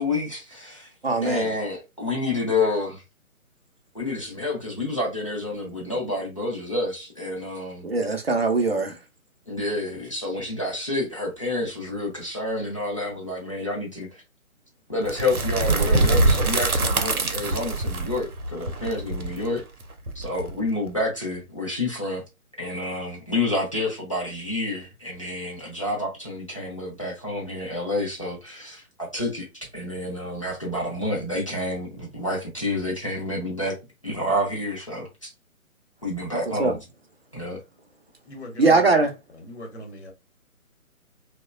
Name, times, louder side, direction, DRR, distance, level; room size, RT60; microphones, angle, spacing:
voice 1, 0.0-0.9 1.2-3.0 3.9-7.9 9.5-14.1 14.9-19.6 20.1-22.2 22.6-29.5 29.7-33.8 34.0-35.3 36.0-36.8 37.3-37.6, left 2 dB, 25° left, 0.5 m, -29 dB
voice 2, 1.0-1.5 7.8-9.0 36.3-36.7 38.6-39.1, right 3 dB, 45° right, 0.4 m, -21 dB
sound 1, 15.1-20.9, right 2 dB, 90° right, 0.7 m, -24 dB
voice 3, 38.3-40.1, left 1 dB, 50° left, 0.9 m, -41 dB
3.0 x 2.1 x 2.3 m
figure-of-eight pair, 140°, 43 cm